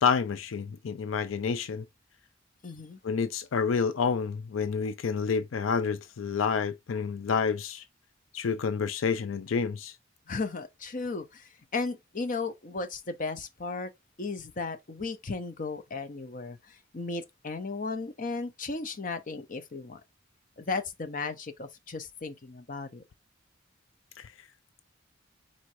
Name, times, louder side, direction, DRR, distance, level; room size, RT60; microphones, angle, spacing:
voice 1, 0.0-1.8 3.0-7.8 8.3-10.0 24.2-24.3, left 5 dB, 80° left, 0.4 m, -29 dB
voice 2, 2.6-3.0 10.3-13.9 14.2-20.0 20.6-23.0, left 3 dB, 40° left, 0.7 m, -35 dB
4.6 x 4.3 x 2.6 m
head